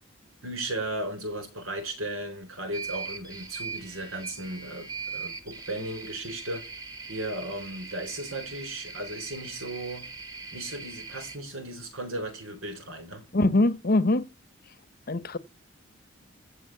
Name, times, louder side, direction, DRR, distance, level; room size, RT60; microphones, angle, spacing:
voice 1, 0.4-6.7 7.1-10.1 10.5-13.3, right 1 dB, 85° right, 4.1 m, -36 dB
sound 1, 2.7-11.4, right 4 dB, 20° right, 1.7 m, -40 dB
voice 2, 13.3-14.2 15.1-15.4, left 2 dB, 45° left, 0.9 m, -22 dB
15.5 x 6.2 x 8.1 m
head